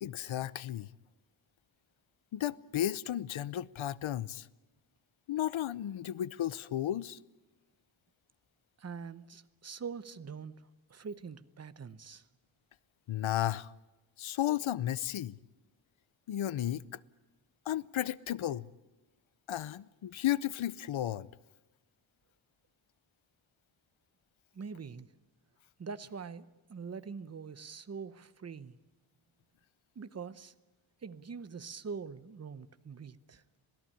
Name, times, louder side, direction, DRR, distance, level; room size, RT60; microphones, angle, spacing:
voice 1, 0.0-0.9 2.3-4.5 5.3-7.2 13.1-13.7 14.2-15.4 16.3-17.0 17.7-18.7 19.5-21.3, left 12 dB, 75° left, 0.8 m, -33 dB
voice 2, 8.8-12.3 24.5-25.1 25.8-28.8 29.9-30.5 31.0-33.4, right 5 dB, 30° right, 0.8 m, -44 dB
27.0 x 17.5 x 10.0 m
wide cardioid pair, 175°, 48 cm